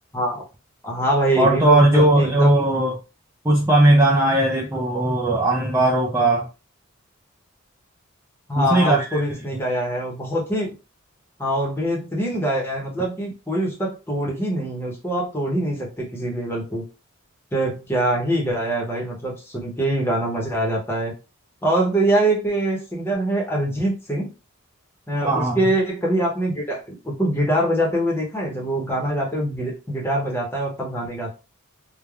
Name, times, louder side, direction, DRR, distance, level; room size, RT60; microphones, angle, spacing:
voice 1, 0.8-2.6 8.5-10.7 11.4-16.9 17.5-21.1 21.6-24.3 25.1-31.3, right 1 dB, 10° left, -2 dB, 0.8 m, -24 dB
voice 2, 1.4-2.9 3.4-6.5 8.6-9.2 25.3-25.7, right 1 dB, 10° right, -3 dB, 0.3 m, -18 dB
3.2 x 2.1 x 2.3 m, 0.30 s
head